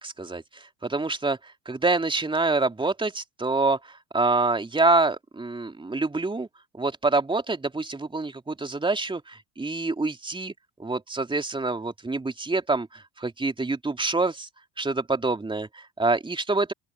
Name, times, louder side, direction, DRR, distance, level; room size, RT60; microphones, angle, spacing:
voice 1, 0.0-6.5 6.7-10.5 10.8-14.5 14.8-16.7, right 3 dB, 10° right, 3.0 m, -26 dB
open air
figure-of-eight pair, 65°, 39 cm